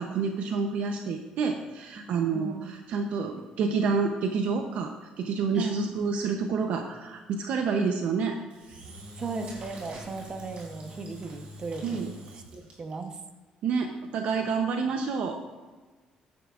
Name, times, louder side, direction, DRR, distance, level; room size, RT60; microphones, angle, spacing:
voice 1, 0.0-4.9 5.2-8.4 11.8-12.1 13.6-15.4, right 5 dB, 70° right, 4 dB, 0.8 m, -28 dB
voice 2, 2.3-2.7 5.5-5.9 9.2-12.1 12.3-13.2, right 3 dB, 30° right, 6 dB, 0.9 m, -36 dB
Engine / Drill, 8.5-13.0, equal, 50° right, 3.4 m, -45 dB
14.5 x 10.5 x 2.5 m, 1.3 s
cardioid pair, 140°, 2 cm